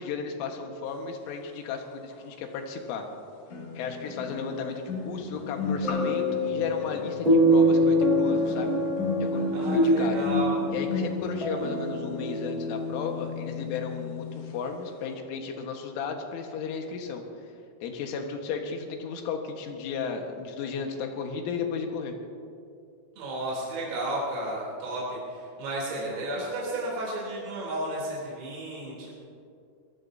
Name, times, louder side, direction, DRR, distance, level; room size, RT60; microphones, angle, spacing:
voice 1, 0.0-3.1 3.8-8.8 9.2-10.2 10.7-17.2 17.8-22.1 26.0-26.3, left 5 dB, 75° left, 3 dB, 3.8 m, -34 dB
sound 1, 2.1-2.2 3.5-14.6 14.8-15.1, left 4 dB, 60° left, 1.8 m, -35 dB
sound 2, 5.8-12.9, equal, 30° right, 0.8 m, -25 dB
voice 2, 9.5-10.5 23.2-29.1, right 1 dB, 90° right, -5 dB, 6.0 m, -33 dB
25.0 x 18.5 x 2.7 m, 2.4 s
omnidirectional pair, 5.9 m